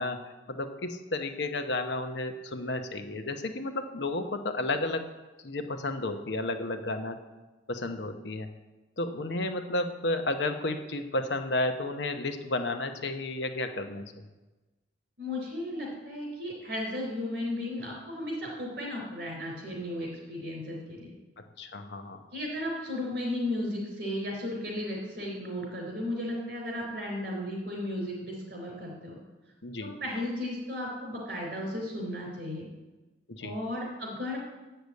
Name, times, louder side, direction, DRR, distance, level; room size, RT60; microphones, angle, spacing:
voice 1, 0.0-5.0 5.4-7.2 7.7-8.5 9.0-14.2 21.4-22.2 29.6-29.9 33.3-33.6, left 2 dB, 75° left, 7 dB, 0.9 m, -32 dB
voice 2, 15.2-21.1 22.3-29.2 29.8-32.7 33.4-34.4, left 1 dB, 60° right, 0 dB, 3.8 m, -35 dB
8.0 x 6.7 x 8.2 m, 1.2 s
head